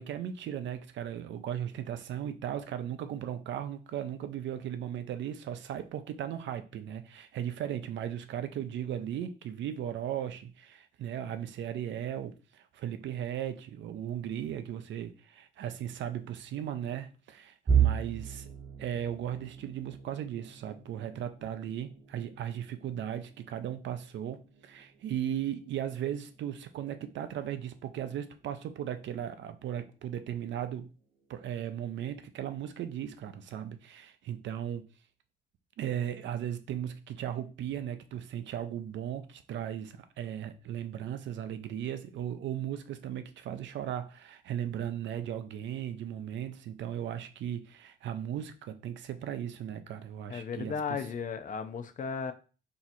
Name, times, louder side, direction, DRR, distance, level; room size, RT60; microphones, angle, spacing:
voice 1, 0.0-18.5 18.8-30.9 31.3-34.9 35.8-51.0, right 10 dB, 70° right, 0.5 m, -37 dB
sound 1, 17.7-29.5 29.9-30.2 30.6-30.7 31.6-32.1, right 8 dB, 30° right, 0.7 m, -36 dB
voice 2, 50.3-52.3, left 6 dB, 40° left, 0.5 m, -35 dB
2.8 x 2.4 x 4.1 m
cardioid pair, 90°, 20 cm